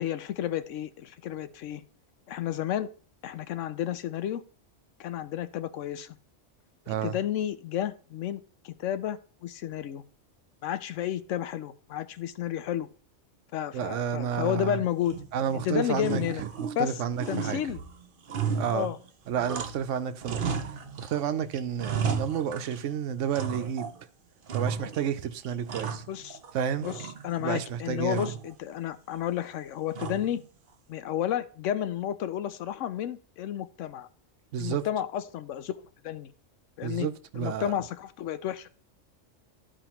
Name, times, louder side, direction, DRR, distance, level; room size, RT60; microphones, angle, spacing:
voice 1, 0.0-1.8 2.3-2.9 3.2-4.4 5.0-6.2 6.9-8.4 8.6-10.0 10.6-12.9 13.5-15.2 15.5-16.4 16.8-17.8 18.7-19.0 26.1-26.4 26.8-26.9 27.2-30.4 30.9-34.1 34.6-35.8 36.0-36.3 36.8-37.1 37.4-38.7, left 11 dB, 85° left, 1.0 m, -31 dB
voice 2, 13.7-14.8 15.3-17.6 18.6-18.9 19.3-23.9 24.5-26.0 26.5-26.9 27.4-28.3 34.5-34.9 36.8-37.8, right 8 dB, 85° right, 1.0 m, -31 dB
sound 1, 15.0-15.6 16.0-16.9 17.2-19.9 20.2-21.2 21.5-22.9 23.3-24.0 24.5-25.1 25.4-26.5 26.8-27.5 28.1-28.5 29.9-30.5, right 6 dB, 50° right, 0.8 m, -34 dB
12.5 x 4.9 x 2.9 m
omnidirectional pair, 1.2 m